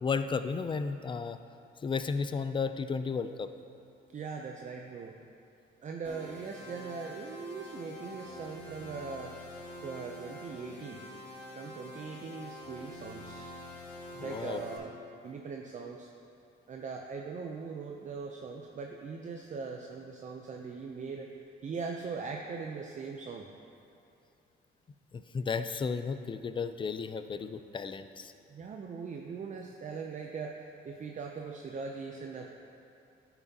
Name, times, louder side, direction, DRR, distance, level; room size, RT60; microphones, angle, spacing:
voice 1, 0.0-1.4 1.8-3.5 14.2-14.6 25.1-28.3, left 5 dB, 25° left, 10 dB, 0.4 m, -33 dB
voice 2, 4.1-5.1 5.8-9.3 9.8-11.0 11.5-13.5 14.2-14.9 15.2-16.1 16.7-21.3 21.6-23.5 28.5-32.5, right 5 dB, 40° right, 2 dB, 0.5 m, -40 dB
sound 1, 6.0-14.8, left 1 dB, 10° left, 1.7 m, -46 dB
10.5 x 5.9 x 2.8 m, 2.8 s
cardioid pair, 90°, 20 cm